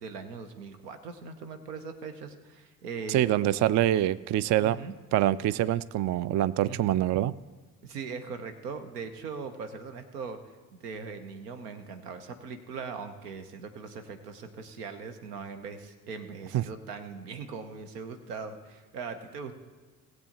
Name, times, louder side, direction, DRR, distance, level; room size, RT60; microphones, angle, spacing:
voice 1, 0.0-3.6 4.6-5.0 6.7-7.0 7.8-19.5, right 5 dB, 85° right, 9 dB, 1.0 m, -40 dB
voice 2, 3.1-4.8 5.1-7.3 16.5-16.6, right 13 dB, 40° right, 19 dB, 0.4 m, -25 dB
20.0 x 7.9 x 3.0 m, 1.3 s
hypercardioid pair, 45°, 46 cm